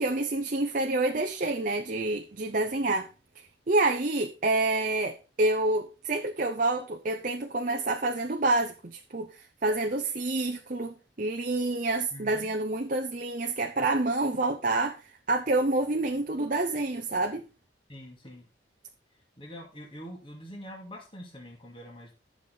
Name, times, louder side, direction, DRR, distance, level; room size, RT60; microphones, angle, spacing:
voice 1, 0.0-3.1 3.7-9.3 9.6-15.0 15.3-17.5, right 2 dB, 45° right, 0.7 m, -28 dB
voice 2, 12.1-12.5 17.9-18.5 19.4-22.1, equal, 25° left, 2.4 m, -44 dB
11.5 x 6.6 x 4.0 m
head